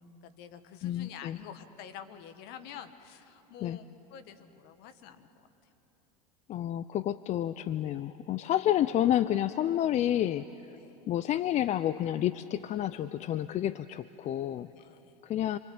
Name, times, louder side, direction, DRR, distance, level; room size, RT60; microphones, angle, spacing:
voice 1, 0.2-5.5 8.4-8.5 10.8-11.0 14.7-15.1, left 9 dB, 55° left, 9 dB, 1.7 m, -48 dB
voice 2, 0.8-1.4 3.6-3.8 6.5-10.8 11.1-14.7 15.2-15.6, left 11 dB, 35° left, 15 dB, 0.6 m, -29 dB
28.0 x 24.5 x 8.7 m, 3.0 s
hypercardioid pair, 90°, 19 cm